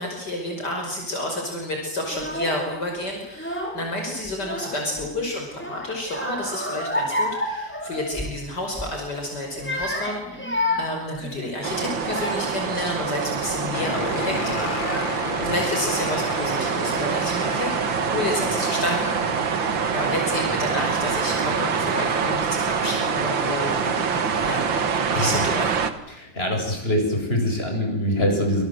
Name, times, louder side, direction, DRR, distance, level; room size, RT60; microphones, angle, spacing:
voice 1, 0.0-10.5 10.7-17.7 18.1-19.6 19.9-24.7 25.1-25.8, left 1 dB, 55° left, 2 dB, 6.0 m, -30 dB
Child speech kid speaking / Crying sobbing, 2.1-2.6 3.3-3.9 4.2-5.1 5.5-8.4 8.7-9.0 9.5-12.6 13.2-13.6 14.4-14.5 14.7-15.4, left 1 dB, 5° left, 6.2 m, -30 dB
sound 1, 11.6-25.9, right 6 dB, 75° right, 2.6 m, -25 dB
sound 2, 13.7-22.4, left 3 dB, 75° left, 4.1 m, -34 dB
voice 2, 26.1-28.6, equal, 30° left, 3 dB, 8.2 m, -23 dB
27.5 x 27.0 x 8.0 m, 0.82 s
omnidirectional pair, 2.1 m